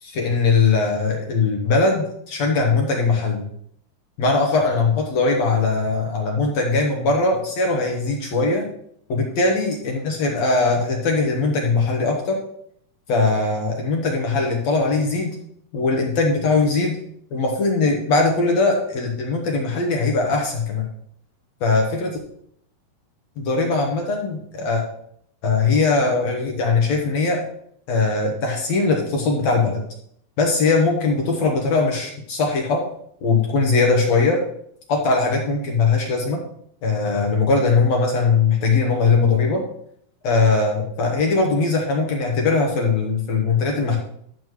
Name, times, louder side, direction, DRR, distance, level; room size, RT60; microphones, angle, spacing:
voice 1, 0.0-3.4 4.2-8.7 9.1-12.4 13.1-15.3 15.7-17.0 17.3-20.9 21.6-22.2 23.4-24.8 25.4-27.4 27.9-29.8 30.4-32.8 33.2-34.4 34.9-36.4 36.8-39.6 40.2-44.0, left 3 dB, 65° left, 1 dB, 1.8 m, -20 dB
12.0 x 7.2 x 3.1 m, 0.67 s
omnidirectional pair, 4.6 m